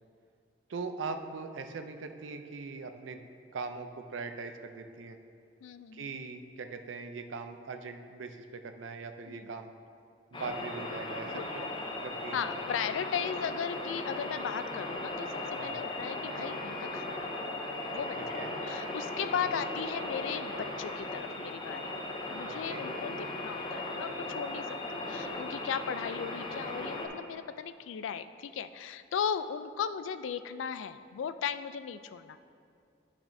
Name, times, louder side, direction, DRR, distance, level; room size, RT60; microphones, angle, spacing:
voice 1, 0.7-3.2 3.5-5.2 5.9-9.7 10.3-11.6 12.0-12.5 15.6-15.8 18.3-18.5 22.4-22.9, right 4 dB, 85° right, 7 dB, 0.5 m, -41 dB
voice 2, 5.6-6.1 9.3-9.5 11.3-11.7 12.3-17.2 17.9-21.9 22.3-32.4, left 7 dB, 90° left, 12 dB, 0.3 m, -37 dB
sound 1, 10.3-27.1, left 2 dB, 25° left, 0.6 m, -37 dB
10.0 x 6.0 x 2.7 m, 2.4 s
head